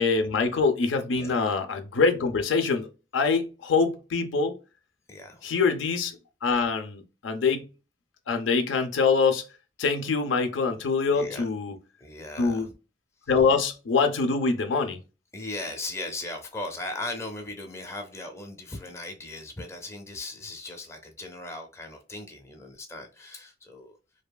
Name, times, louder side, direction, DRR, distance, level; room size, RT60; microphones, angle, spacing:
voice 1, 0.0-2.9 3.1-4.6 5.4-6.2 6.4-7.7 8.3-9.4 9.8-11.7 12.4-12.7 13.3-15.0, left 4 dB, 80° left, 0.5 m, -24 dB
voice 2, 5.1-5.5 11.1-11.5 12.0-12.7 13.2-13.3 15.3-24.0, left 2 dB, 15° left, 0.5 m, -38 dB
2.7 x 2.3 x 2.2 m
head